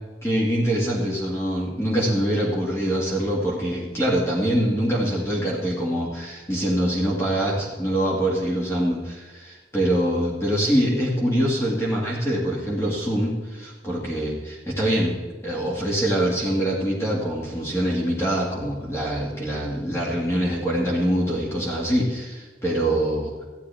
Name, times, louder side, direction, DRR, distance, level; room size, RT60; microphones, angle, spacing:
voice 1, 0.2-15.2 15.4-23.4, right 1 dB, 15° left, -5 dB, 2.0 m, -24 dB
14.5 x 11.0 x 3.5 m, 1.3 s
head